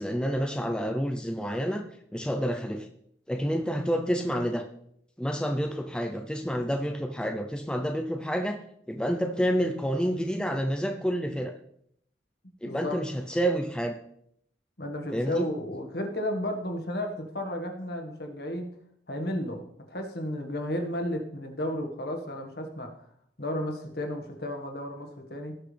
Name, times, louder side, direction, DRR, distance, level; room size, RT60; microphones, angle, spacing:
voice 1, 0.0-1.8 2.1-2.9 3.3-4.6 5.2-8.6 8.9-11.5 12.6-13.9 15.1-15.5, equal, 5° left, 4 dB, 0.6 m, -29 dB
voice 2, 12.6-13.0 14.8-18.7 19.1-22.9 23.4-25.5, left 1 dB, 60° left, 3 dB, 1.8 m, -33 dB
17.5 x 6.1 x 3.4 m, 0.69 s
head